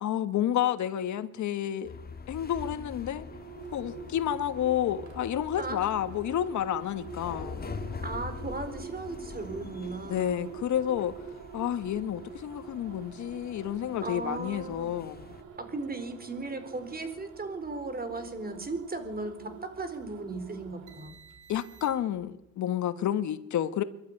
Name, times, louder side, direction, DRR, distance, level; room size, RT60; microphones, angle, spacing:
voice 1, 0.0-1.9 2.3-3.2 3.7-7.6 10.1-11.1 11.5-15.3 21.5-23.8, left 11 dB, 70° left, 1.4 m, -30 dB
sound 1, 1.8-15.4, left 5 dB, 30° left, 2.0 m, -44 dB
sound 2, 3.2-22.2, right 6 dB, 80° right, 3.9 m, -46 dB
voice 2, 8.0-10.4 14.0-14.9 15.6-21.1, right 3 dB, 30° right, 4.2 m, -37 dB
24.5 x 12.0 x 9.8 m
cardioid pair, 90°, 30 cm